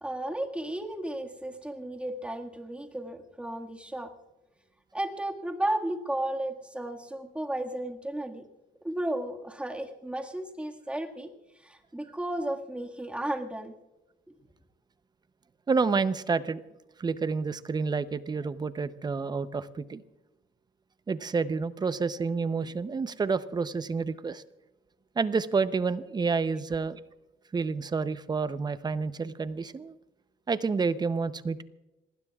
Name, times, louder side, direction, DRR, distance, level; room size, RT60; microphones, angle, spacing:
voice 1, 0.0-4.1 4.9-8.4 8.8-11.3 11.6-13.7, right 1 dB, 5° right, 2 dB, 1.8 m, -34 dB
voice 2, 15.7-16.6 17.0-20.0 21.1-24.4 25.2-27.0 27.5-30.0 30.5-31.6, right 4 dB, 25° right, 13 dB, 0.7 m, -29 dB
26.5 x 19.5 x 2.4 m, 1.0 s
cardioid pair, 110°, 17 cm